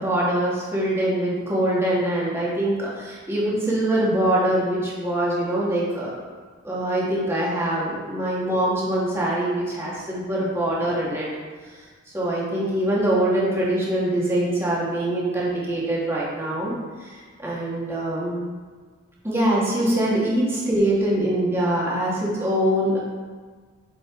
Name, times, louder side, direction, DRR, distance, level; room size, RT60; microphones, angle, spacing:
voice 1, 0.0-6.2 6.6-11.3 12.1-18.5 19.2-23.0, right 1 dB, 10° right, -7 dB, 2.0 m, -23 dB
7.9 x 6.9 x 3.9 m, 1.5 s
head